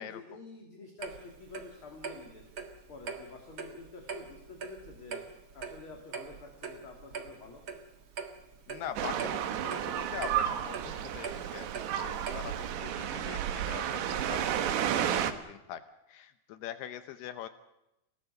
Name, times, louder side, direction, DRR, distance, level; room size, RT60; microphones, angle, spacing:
voice 1, 0.0-2.5 2.9-5.2 5.5-7.6, left 3 dB, 35° left, 2 dB, 3.3 m, -48 dB
Clock, 1.0-12.7, right 5 dB, 45° right, 1.8 m, -43 dB
voice 2, 8.7-17.5, left 10 dB, 80° left, 10 dB, 2.9 m, -43 dB
sound 1, 9.0-15.3, right 10 dB, 85° right, 3.6 m, -32 dB
28.5 x 18.0 x 6.6 m, 0.90 s
omnidirectional pair, 4.8 m